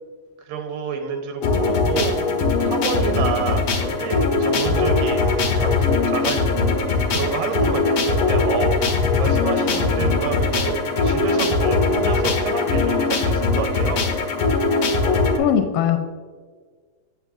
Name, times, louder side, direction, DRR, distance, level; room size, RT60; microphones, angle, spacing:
voice 1, 0.4-2.2 2.6-14.1, right 6 dB, 85° right, 5 dB, 2.5 m, -28 dB
sound 1, 1.4-15.4, left 4 dB, 75° left, 1.3 m, -20 dB
voice 2, 15.4-16.0, left 9 dB, 90° left, 6 dB, 2.3 m, -19 dB
8.9 x 6.7 x 2.5 m, 1.5 s
omnidirectional pair, 3.9 m